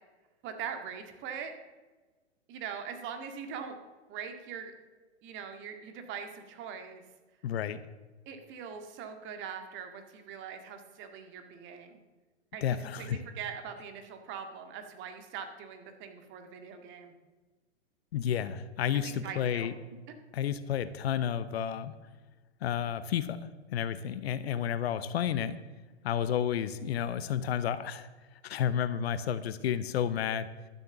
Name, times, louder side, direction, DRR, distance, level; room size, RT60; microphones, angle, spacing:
voice 1, 0.4-1.5 2.5-3.8 4.1-4.7 5.2-7.0 8.3-12.0 12.5-17.1 18.9-19.7, right 7 dB, 35° right, 6 dB, 1.9 m, -42 dB
voice 2, 7.4-7.8 12.6-13.2 18.1-19.7 20.3-21.9 22.6-23.4 23.7-25.5 26.0-28.1 28.4-30.5, left 9 dB, 65° left, 13 dB, 0.8 m, -31 dB
12.0 x 7.3 x 7.2 m, 1.3 s
hypercardioid pair, 110°, 34 cm